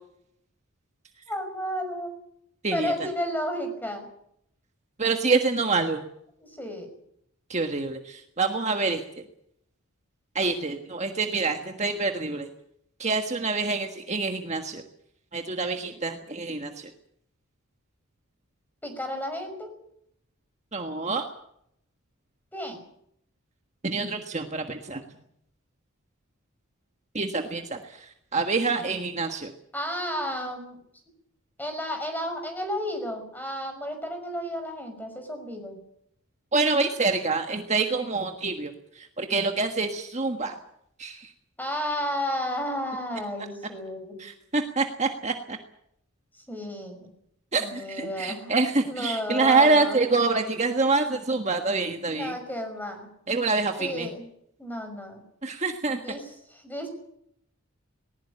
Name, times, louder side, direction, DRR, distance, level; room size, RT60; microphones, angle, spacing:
voice 1, 1.3-2.1 2.7-4.1 6.4-6.9 18.8-19.7 22.5-22.8 29.7-30.8 31.6-35.8 41.6-44.2 46.5-47.1 47.6-48.6 48.8-50.0 52.1-53.1 53.8-54.3 54.6-55.2 56.0-56.9, equal, 10° left, 6 dB, 5.7 m, -32 dB
voice 2, 5.0-6.0 7.5-9.2 10.3-12.5 13.0-14.8 15.3-16.9 20.7-21.2 23.8-25.0 27.1-29.5 36.5-40.6 41.0-41.3 44.2-45.6 47.5-52.3 53.3-54.1 55.4-56.2, right 3 dB, 30° right, 5 dB, 1.5 m, -26 dB
19.5 x 19.5 x 8.7 m, 0.73 s
head